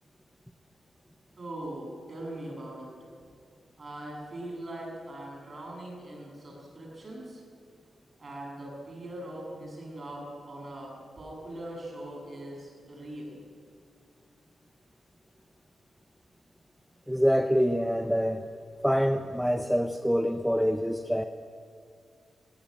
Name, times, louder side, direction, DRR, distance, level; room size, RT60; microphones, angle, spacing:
voice 1, 1.4-2.9 3.8-7.4 8.2-13.4, right 1 dB, 30° right, -2 dB, 7.7 m, -41 dB
voice 2, 17.1-18.5 18.8-21.3, equal, ahead, 7 dB, 0.6 m, -25 dB
19.0 x 16.5 x 10.0 m, 2.3 s
wide cardioid pair, 155°, 0 cm